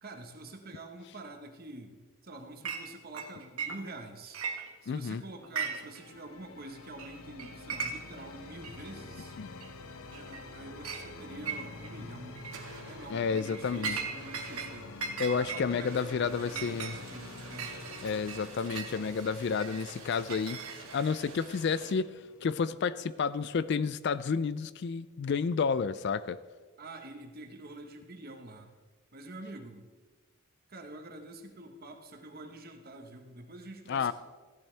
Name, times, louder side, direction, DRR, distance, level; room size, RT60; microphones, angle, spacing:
voice 1, 0.0-1.9 2.2-4.4 4.8-9.4 10.1-12.4 12.8-14.9 15.2-17.8 26.8-28.7 29.1-29.8 30.7-34.1, right 2 dB, 45° right, 4 dB, 1.2 m, -46 dB
Chink clink, 2.6-2.9 3.1-4.0 4.3-5.1 5.4-6.0 6.3-6.4 7.0-7.1 7.4-8.2 8.6-8.7 9.6-9.7 10.1-10.5 10.8-11.0 11.5-11.9 12.4-12.6 13.1-14.7 15.0-18.9 19.6-21.1, right 5 dB, 85° right, 1.3 m, -38 dB
voice 2, 4.9-5.2 9.4-9.5 13.1-14.0 15.2-17.0 18.0-20.6 20.9-22.1 22.4-26.4 33.9-34.1, left 5 dB, 55° left, 16 dB, 0.3 m, -30 dB
sound 1, 5.4-23.1, left 3 dB, 80° left, 0.9 m, -48 dB
sound 2, 11.9-12.1 12.5-13.2 14.1-14.9 15.6-21.9, right 4 dB, 70° right, 1.7 m, -49 dB
15.0 x 10.5 x 3.3 m, 1.3 s
head